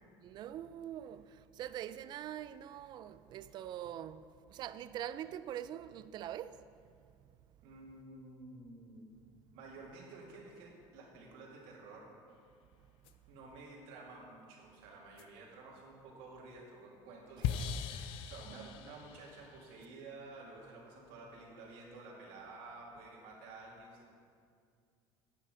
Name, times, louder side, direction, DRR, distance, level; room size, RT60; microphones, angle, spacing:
voice 1, 0.2-6.6 18.5-18.7, right 11 dB, 50° right, 0.4 m, -44 dB
voice 2, 7.6-9.0 9.5-12.1 13.3-24.1, right 3 dB, 85° right, 2.5 m, -52 dB
sound 1, 13.1-13.2 15.2-15.3 17.4-19.9, left 8 dB, 65° left, 0.5 m, -39 dB
10.0 x 8.5 x 4.9 m
cardioid pair, 140°, 10 cm